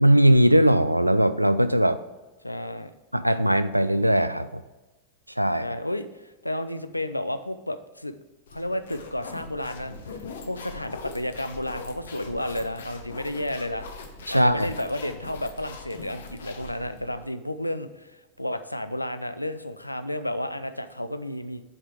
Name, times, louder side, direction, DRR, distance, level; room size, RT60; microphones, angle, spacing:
voice 1, 0.0-2.0 3.1-4.6 5.4-5.7 14.3-14.7, right 1 dB, 90° right, 13 dB, 0.4 m, -19 dB
voice 2, 2.4-2.9 5.6-8.1 8.5-9.9 10.4-13.9 14.3-21.6, left 1 dB, 85° left, 11 dB, 0.4 m, -32 dB
sound 1, 8.5-17.3, left 4 dB, 65° left, 0.9 m, -42 dB
7.3 x 4.9 x 4.7 m, 1.2 s
figure-of-eight pair, 90°, 0 cm